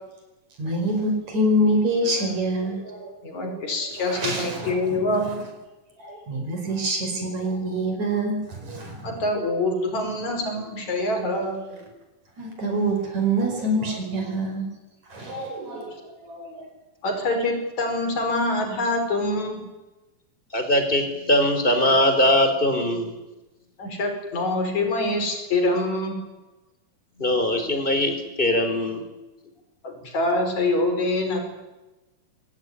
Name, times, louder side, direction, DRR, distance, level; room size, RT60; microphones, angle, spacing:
voice 1, 0.6-3.6 4.0-5.0 6.0-9.2 12.4-14.7 15.1-16.7, right 1 dB, 60° right, 4 dB, 6.4 m, -26 dB
voice 2, 3.2-5.5 9.0-11.6 17.0-19.6 23.8-26.2 29.8-31.4, left 2 dB, 60° left, 4 dB, 6.3 m, -25 dB
voice 3, 20.5-23.1 27.2-29.0, left 1 dB, 15° left, 6 dB, 4.1 m, -21 dB
24.0 x 18.0 x 9.8 m, 1.1 s
omnidirectional pair, 3.7 m